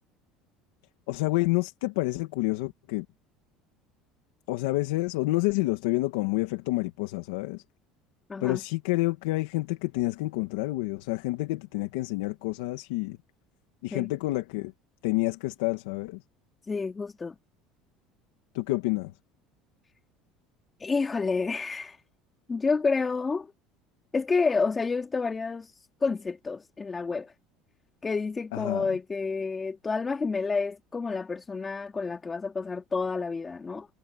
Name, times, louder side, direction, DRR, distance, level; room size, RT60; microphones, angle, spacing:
voice 1, 1.1-3.1 4.5-7.6 8.4-13.2 13.8-14.7 15.0-16.2 18.5-19.1 28.5-28.9, left 20 dB, 90° left, 2.2 m, -28 dB
voice 2, 8.3-8.6 13.9-14.1 16.7-17.4 20.8-22.0 22.5-23.5 24.1-27.3 28.0-33.9, left 4 dB, 20° left, 2.8 m, -29 dB
cardioid pair, 135°, 0 cm